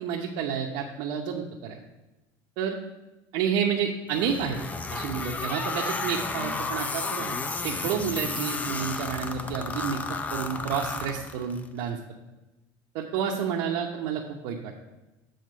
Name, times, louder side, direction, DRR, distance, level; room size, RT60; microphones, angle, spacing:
voice 1, 0.0-1.8 2.6-2.8 3.3-4.6 4.9-12.0 12.9-14.8, right 7 dB, 70° right, -2 dB, 0.9 m, -30 dB
sound 1, 4.1-11.7, left 3 dB, 15° left, 0.4 m, -32 dB
7.9 x 4.2 x 6.6 m, 1.0 s
cardioid pair, 155°, 10 cm